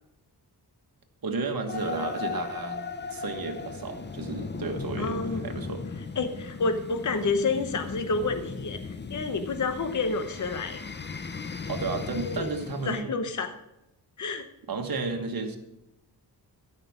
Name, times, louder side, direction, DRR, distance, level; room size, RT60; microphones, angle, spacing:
voice 1, 1.2-2.8 3.1-5.8 11.7-13.2 14.7-15.6, right 4 dB, 60° right, 5 dB, 1.5 m, -32 dB
sound 1, 1.7-13.0, left 4 dB, 25° left, 0.6 m, -37 dB
voice 2, 5.0-5.4 6.2-10.8 12.1-12.5 12.8-13.5 14.2-14.5, left 4 dB, 45° left, 7 dB, 1.0 m, -29 dB
13.0 x 5.9 x 7.3 m, 0.88 s
wide cardioid pair, 160°, 40 cm